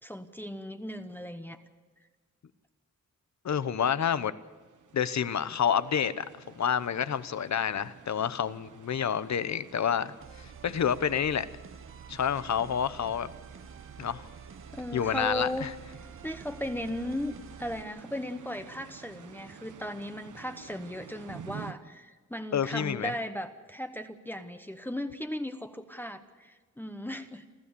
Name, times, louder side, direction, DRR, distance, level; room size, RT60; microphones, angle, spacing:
voice 1, 0.0-1.6 14.7-15.7 16.2-27.5, equal, 5° left, 7 dB, 1.0 m, -36 dB
voice 2, 3.4-4.3 4.9-6.2 6.6-11.5 12.1-13.3 14.0-14.2 14.9-15.7 22.5-23.1, left 8 dB, 65° left, 14 dB, 0.9 m, -29 dB
sound 1, 4.4-21.7, right 7 dB, 85° right, 1.0 m, -51 dB
sound 2, 10.2-17.8, right 6 dB, 45° right, 0.9 m, -49 dB
28.5 x 14.0 x 6.9 m, 1.4 s
wide cardioid pair, 115°, 30 cm